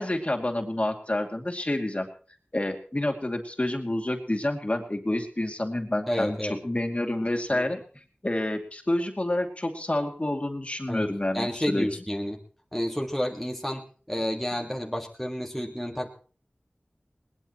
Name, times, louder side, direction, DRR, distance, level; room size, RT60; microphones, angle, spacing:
voice 1, 0.0-2.1 2.5-7.8 8.2-11.9 14.2-14.3, left 1 dB, 35° left, 3 dB, 2.6 m, -28 dB
voice 2, 6.1-6.6 7.5-7.7 10.9-11.1 11.3-12.4 12.7-16.1, equal, 5° left, 0 dB, 1.8 m, -30 dB
21.0 x 19.5 x 3.0 m, 0.41 s
wide cardioid pair, 50°, 4 cm